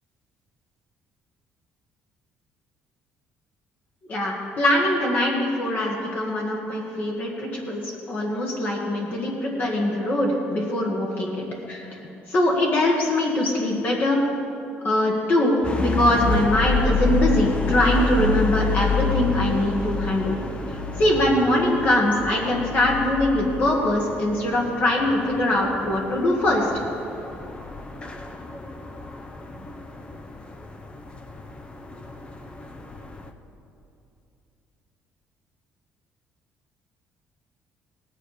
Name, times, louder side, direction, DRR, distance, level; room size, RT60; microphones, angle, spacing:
voice 1, 4.1-11.9 12.3-14.2 14.8-20.4 21.0-26.7, left 1 dB, 45° left, -2 dB, 1.8 m, -22 dB
sound 1, 15.6-33.3, left 4 dB, 25° left, 0.8 m, -29 dB
18.5 x 8.6 x 4.9 m, 2.8 s
cardioid pair, 125°, 4 cm